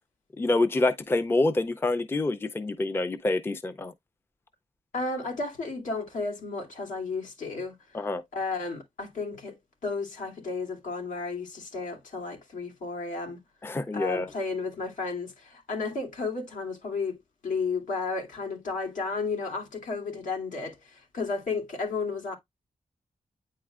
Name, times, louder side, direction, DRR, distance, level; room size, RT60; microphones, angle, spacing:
voice 1, 0.4-3.9 7.9-8.2 13.6-14.3, left 2 dB, 20° left, 0.5 m, -26 dB
voice 2, 4.9-8.0 8.3-9.6 9.8-13.4 13.9-17.2 17.4-22.4, left 4 dB, 85° left, 2.8 m, -33 dB
9.3 x 4.3 x 2.4 m
wide cardioid pair, 180°, 13 cm